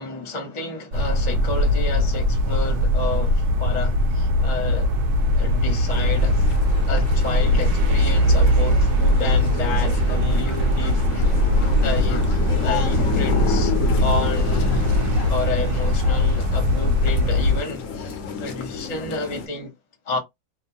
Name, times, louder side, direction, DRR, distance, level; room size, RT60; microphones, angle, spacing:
voice 1, 0.0-4.9 5.4-6.5 6.9-11.1 11.8-12.2 12.6-13.7 14.0-14.8 15.3-19.7 20.1-20.2, left 3 dB, 35° left, 0.7 m, -30 dB
sound 1, 0.9-17.6, left 1 dB, 75° right, 1.0 m, -20 dB
sound 2, 5.9-19.5, left 5 dB, 65° left, 0.9 m, -31 dB
2.9 x 2.2 x 2.7 m
omnidirectional pair, 1.7 m